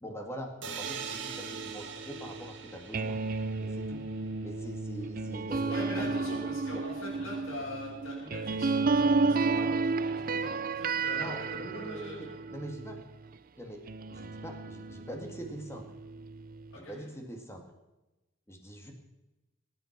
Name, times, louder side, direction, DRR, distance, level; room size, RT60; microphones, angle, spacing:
voice 1, 0.0-3.2 3.6-4.0 4.4-6.4 6.7-6.9 11.2-13.0 13.6-13.8 14.1-15.9 16.7-17.6 18.5-18.9, equal, 15° left, 2 dB, 2.1 m, -43 dB
sound 1, 0.6-4.4, right 6 dB, 60° right, 2.1 m, -43 dB
sound 2, 0.8-13.4 13.8-16.8, right 4 dB, 45° right, 0.5 m, -33 dB
voice 2, 5.5-11.5 11.7-12.3 16.7-17.1, left 2 dB, 80° left, -7 dB, 6.2 m, -43 dB
23.0 x 9.6 x 6.0 m, 1.0 s
head